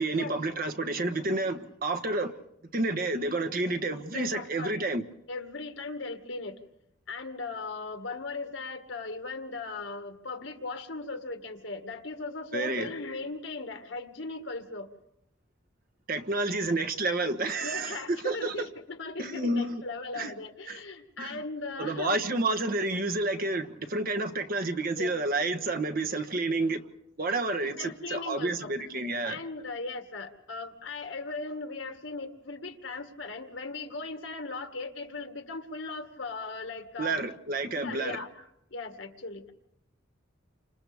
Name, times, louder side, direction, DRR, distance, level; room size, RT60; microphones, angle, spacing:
voice 1, 0.0-2.3 2.7-5.0 12.5-12.9 16.1-18.7 19.2-19.8 20.1-20.3 20.7-20.8 21.2-21.4 21.8-26.8 27.2-29.4 37.0-38.2, right 2 dB, 45° right, 1.2 m, -30 dB
voice 2, 4.1-4.7 5.3-6.6 7.1-14.9 17.6-22.2 25.0-25.1 27.6-28.9 29.2-37.2 37.6-39.5, left 3 dB, 70° left, 1.9 m, -38 dB
30.0 x 26.0 x 3.5 m
head